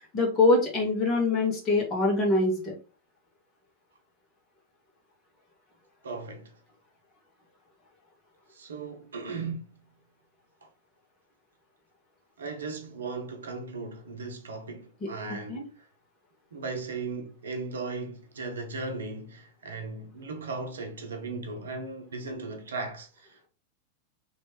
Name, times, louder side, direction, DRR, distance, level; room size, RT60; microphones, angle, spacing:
voice 1, 0.0-2.7 15.5-15.6, left 2 dB, 30° left, 1.4 m, -24 dB
voice 2, 6.0-6.6 8.5-9.8 10.6-10.7 12.4-15.9 16.5-23.5, right 3 dB, 70° right, 0.7 m, -37 dB
3.2 x 3.0 x 2.9 m
figure-of-eight pair, 90°, 0 cm